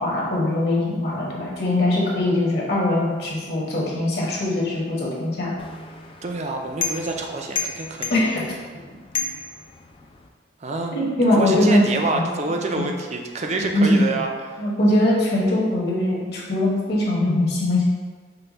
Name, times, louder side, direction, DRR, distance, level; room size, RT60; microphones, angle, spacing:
voice 1, 0.0-5.5 8.1-8.4 10.9-11.8 12.8-12.9 13.6-14.0 14.6-17.8, left 1 dB, 55° left, -5 dB, 1.2 m, -21 dB
sound 1, 5.6-10.3, left 5 dB, 30° left, 0.3 m, -33 dB
voice 2, 6.2-8.2 10.6-11.0 11.3-14.7, right 2 dB, 35° right, 3 dB, 0.4 m, -27 dB
5.5 x 2.3 x 4.0 m, 1.4 s
head